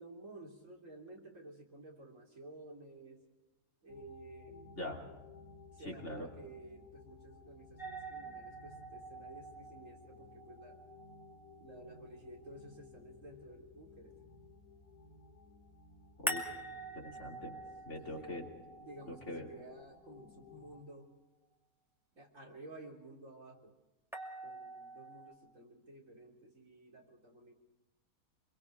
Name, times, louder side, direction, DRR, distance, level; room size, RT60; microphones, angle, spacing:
voice 1, 0.0-3.2 3.8-4.8 5.7-10.9 11.6-14.2 18.0-18.4 18.8-21.1 22.2-23.7 24.4-27.5, right 2 dB, 55° right, 0 dB, 4.0 m, -53 dB
sound 1, 3.9-20.8, left 5 dB, 75° left, 2.6 m, -57 dB
voice 2, 4.7-5.1 5.8-6.3 16.2-16.5 16.9-17.6 17.9-18.5 19.1-19.5, left 1 dB, 45° left, 0 dB, 3.3 m, -43 dB
sound 2, 7.8-12.8 16.3-20.4 24.1-25.3, right 1 dB, ahead, 2.3 m, -45 dB
27.0 x 23.0 x 4.8 m, 1.1 s
omnidirectional pair, 1.6 m